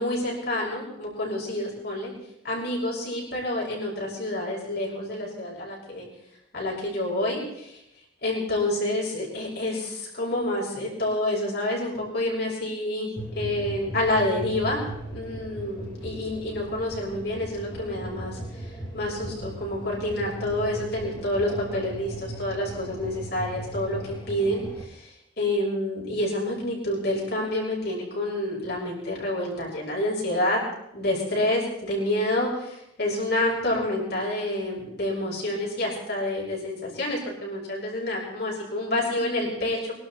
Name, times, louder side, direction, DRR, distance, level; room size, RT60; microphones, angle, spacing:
voice 1, 0.0-2.1 2.4-6.1 6.5-7.8 8.2-14.8 15.1-24.0 24.2-25.1 25.4-30.6 30.9-39.9, left 1 dB, 55° left, -3 dB, 6.3 m, -28 dB
sound 1, 13.2-24.8, right 1 dB, 25° left, 3.2 m, -38 dB
24.0 x 12.0 x 4.3 m, 0.81 s
head